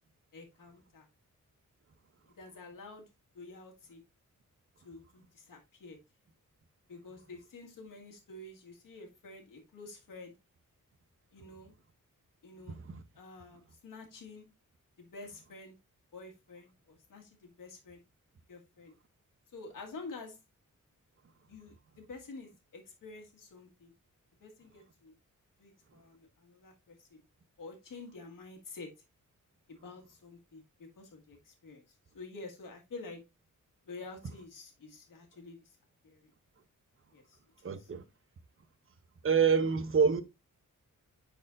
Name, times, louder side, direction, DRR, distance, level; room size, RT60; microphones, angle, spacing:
voice 1, 0.3-1.1 2.4-3.0 3.3-4.0 4.8-6.0 6.9-10.3 11.3-11.7 12.4-12.8 13.1-14.5 15.0-15.8 16.1-18.0 18.5-18.9 19.5-20.4 21.5-23.9 24.4-25.1 25.6-27.2 27.6-28.9 29.7-31.8 32.1-33.2 33.9-35.6 36.0-36.3 37.1-37.4 37.6-37.9, left 3 dB, 85° left, 1.9 m, -49 dB
voice 2, 12.7-13.0 37.6-38.0 39.2-40.2, right 6 dB, 40° right, 0.8 m, -27 dB
10.0 x 4.2 x 2.5 m
wide cardioid pair, 125°, 32 cm